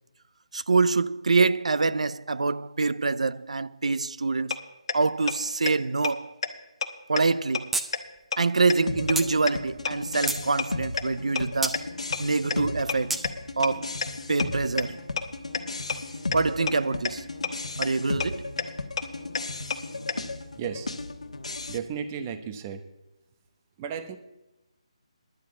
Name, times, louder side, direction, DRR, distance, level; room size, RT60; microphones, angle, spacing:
voice 1, 0.5-4.6 4.9-6.3 7.1-7.7 8.4-11.8 12.2-13.2 13.6-14.0 14.3-15.0 16.3-17.2 17.8-18.5, right 3 dB, 80° right, 0.5 m, -25 dB
sound 1, 4.5-4.6 4.9-5.0 5.3-5.4 5.7-5.8 6.0-6.1 6.4-6.5 6.8-6.9 7.2-7.3 7.5-7.6 7.9-8.0 8.3-8.4 8.7-8.8 9.1-9.2 9.5-9.6 9.8-9.9 10.2-10.3 10.6-10.7 11.0-11.1 11.3-11.4 11.7-11.8 12.1-12.2 12.5-12.6 12.9-13.0 13.2-13.3 13.6-13.7 14.0-14.1 14.4-14.5 14.8-14.9 15.2-15.3 15.5-15.6 15.9-16.0 16.3-16.4 16.7-16.8 17.0-17.1 17.4-17.5 17.8-17.9 18.2-18.3 18.6-18.7 19.0-19.1 19.3-19.4 19.7-19.8 20.1-20.2, left 6 dB, 50° left, 1.0 m, -27 dB
sound 2, 7.7-7.9 8.2-8.3 9.2-9.3 9.9-10.5 11.6-11.8 13.1-13.2, right 2 dB, 5° right, 0.4 m, -28 dB
sound 3, 8.9-21.8, left 3 dB, 85° left, 1.2 m, -35 dB
voice 2, 20.6-20.9 21.7-22.8 23.8-24.2, right 7 dB, 20° right, 0.8 m, -34 dB
10.5 x 7.5 x 8.3 m
figure-of-eight pair, 160°, 3 cm